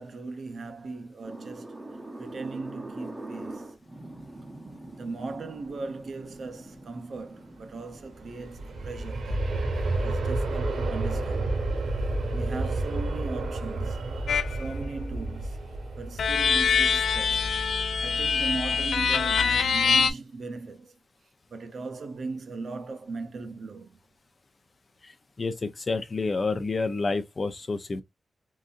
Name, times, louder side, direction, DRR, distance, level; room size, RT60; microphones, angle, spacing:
voice 1, 0.0-1.8 2.2-3.6 4.9-9.5 10.0-11.5 12.3-15.6 16.0-17.4 18.0-20.9 21.5-24.0, right 3 dB, 60° right, 0.6 m, -38 dB
sound 1, 1.2-11.6, right 2 dB, 15° right, 0.7 m, -44 dB
Aircraft, 8.0-18.8 19.3-19.4, right 2 dB, 80° right, 1.3 m, -31 dB
sound 2, 14.3-14.6 16.2-20.1, left 6 dB, 80° left, 0.4 m, -24 dB
voice 2, 25.0-28.0, left 3 dB, 35° left, 0.5 m, -29 dB
3.9 x 2.6 x 2.5 m
wide cardioid pair, 150°, 0 cm